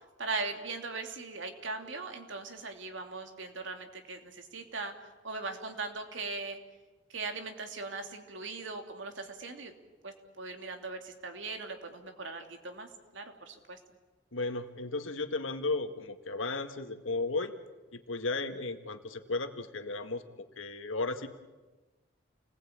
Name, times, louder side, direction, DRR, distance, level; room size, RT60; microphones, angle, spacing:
voice 1, 0.2-4.9 5.2-6.6 7.1-9.7 10.0-12.9 13.1-13.8, right 3 dB, 75° right, 5 dB, 2.9 m, -39 dB
voice 2, 14.3-17.5 17.9-20.2 20.6-21.3, left 3 dB, 90° left, 7 dB, 1.9 m, -34 dB
29.0 x 20.0 x 8.8 m, 1.2 s
head